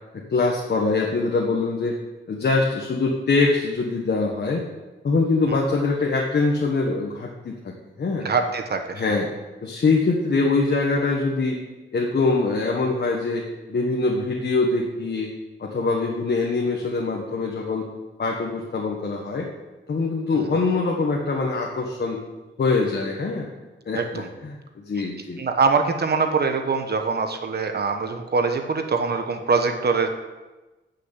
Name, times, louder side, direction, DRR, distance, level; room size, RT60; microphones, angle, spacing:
voice 1, 0.3-2.0 2.3-4.6 5.0-7.7 8.0-8.3 8.9-9.3 9.6-11.6 11.9-15.3 15.6-17.9 18.2-19.5 19.9-22.2 22.6-23.5 23.9-24.6 24.9-25.4, left 3 dB, 55° left, -1 dB, 1.4 m, -23 dB
voice 2, 8.2-9.1 20.3-20.5 23.9-24.3 25.4-30.1, right 4 dB, 50° right, 6 dB, 1.1 m, -23 dB
12.0 x 6.6 x 8.1 m, 1.2 s
wide cardioid pair, 170°, 21 cm